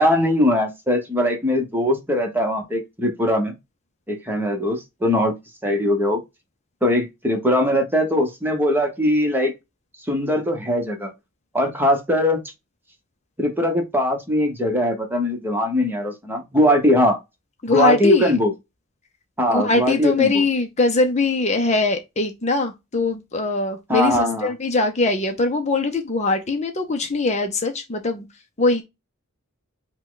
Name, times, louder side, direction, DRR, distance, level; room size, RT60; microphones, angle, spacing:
voice 1, 0.0-3.5 4.1-5.3 5.6-6.2 6.8-9.5 10.1-11.1 11.5-12.4 13.4-17.2 17.7-18.5 19.4-20.4 23.9-24.5, left 1 dB, 10° right, 1.1 m, -20 dB
voice 2, 17.6-18.4 19.5-28.3 28.6-28.8, left 3 dB, 35° left, 0.7 m, -22 dB
5.6 x 2.3 x 3.8 m
head